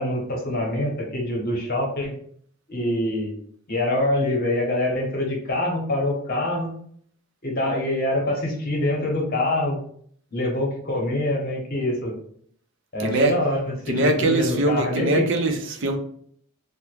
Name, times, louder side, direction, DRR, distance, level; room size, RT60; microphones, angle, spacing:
voice 1, 0.0-2.1 2.7-3.4 3.7-6.7 7.4-9.8 10.3-12.1 12.9-13.6 14.0-15.3, left 1 dB, 45° left, 0 dB, 0.9 m, -25 dB
voice 2, 13.0-13.3 13.9-16.0, right 2 dB, 60° right, 5 dB, 0.5 m, -22 dB
3.4 x 2.1 x 3.2 m, 0.62 s
head